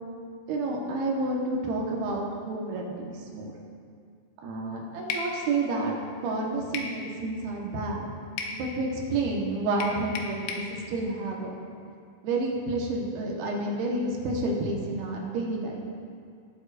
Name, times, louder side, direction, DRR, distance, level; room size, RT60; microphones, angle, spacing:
voice 1, 0.5-3.5 4.4-5.9 6.2-8.0 8.5-11.5 12.2-15.8, right 2 dB, 75° right, -1 dB, 3.2 m, -30 dB
sound 1, 5.1-5.3 6.7-7.0 8.4-8.6 9.8-10.7, left 4 dB, 85° left, 2.8 m, -33 dB
19.0 x 8.5 x 2.5 m, 2.3 s
omnidirectional pair, 4.6 m